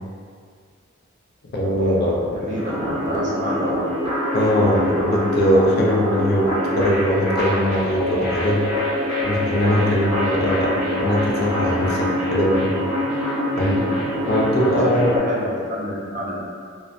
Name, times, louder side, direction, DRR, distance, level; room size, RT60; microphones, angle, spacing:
voice 1, 1.5-2.4 4.3-8.6 9.2-12.7 13.6-13.8 14.3-15.1, left 1 dB, 50° left, -3 dB, 0.4 m, -21 dB
voice 2, 2.3-3.9 14.6-16.4, equal, 40° right, -5 dB, 0.4 m, -28 dB
sound 1, 2.5-15.2, equal, 20° right, 0.8 m, -24 dB
2.6 x 2.0 x 2.3 m, 2.1 s
head